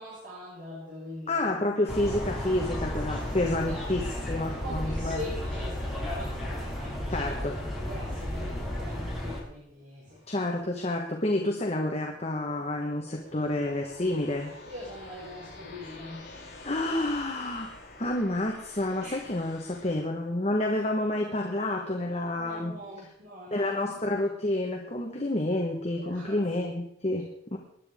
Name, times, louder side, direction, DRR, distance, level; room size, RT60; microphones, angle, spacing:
voice 1, 0.0-1.5 2.8-3.8 4.3-10.2 14.6-16.3 19.0-19.3 22.3-23.9 26.0-26.4, left 1 dB, 75° right, -9 dB, 7.0 m, -43 dB
voice 2, 1.3-5.2 7.1-7.6 10.3-14.5 16.6-17.7 18.0-22.7 23.5-27.6, left 1 dB, 35° left, 1 dB, 1.4 m, -29 dB
sound 1, 1.9-9.4, left 1 dB, ahead, 4.5 m, -33 dB
sound 2, 10.1-19.9, left 2 dB, 60° left, 4.8 m, -49 dB
21.0 x 10.5 x 3.7 m, 0.71 s
head